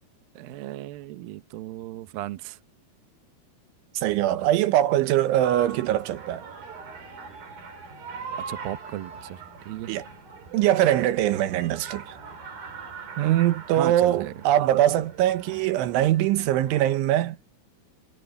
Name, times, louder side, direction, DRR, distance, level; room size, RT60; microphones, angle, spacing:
voice 1, 0.4-2.6 8.5-9.4 9.7-9.9 13.7-14.3, right 14 dB, 90° right, 2.0 m, -35 dB
voice 2, 4.0-6.4 9.9-10.1 10.5-12.2 13.2-17.4, right 13 dB, 75° right, 3.5 m, -22 dB
sound 1, 5.4-17.0, right 5 dB, 45° right, 6.1 m, -41 dB
omnidirectional pair, 5.8 m